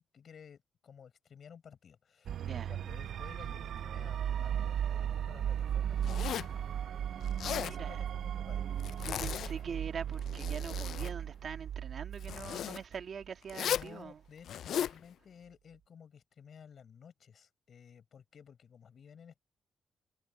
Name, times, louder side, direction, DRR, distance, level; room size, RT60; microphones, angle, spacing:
voice 1, 0.0-6.1 6.5-6.7 7.6-8.7 13.6-19.4, left 7 dB, 50° left, 6.9 m, -54 dB
sound 1, 2.3-13.3, right 9 dB, 70° right, 0.4 m, -36 dB
voice 2, 2.4-2.7 7.4-8.0 9.0-14.2, right 6 dB, 50° right, 1.9 m, -43 dB
Zipper (clothing), 6.0-6.6 7.2-7.8 8.8-9.5 10.1-11.1 12.2-12.8 13.5-13.9 14.4-15.0, left 10 dB, 75° left, 0.3 m, -36 dB
wide cardioid pair, 140°, 0 cm